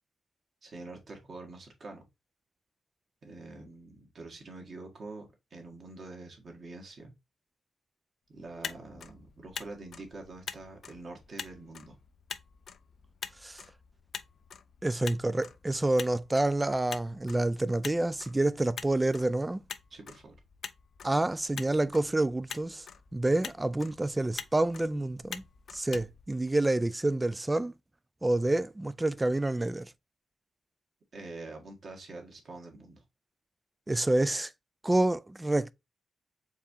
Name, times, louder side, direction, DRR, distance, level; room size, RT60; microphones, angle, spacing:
voice 1, 0.6-2.1 3.2-7.1 8.3-12.0 19.9-20.3 31.1-33.0, right 3 dB, 50° right, 1.7 m, -45 dB
Motor vehicle (road), 8.4-27.0, left 7 dB, 65° left, 0.4 m, -46 dB
voice 2, 14.8-19.6 21.0-22.8 23.1-25.4 25.7-27.7 28.2-29.9 33.9-34.5 34.8-35.7, right 2 dB, 15° right, 0.3 m, -28 dB
4.7 x 3.5 x 2.7 m
cardioid pair, 105°, 0 cm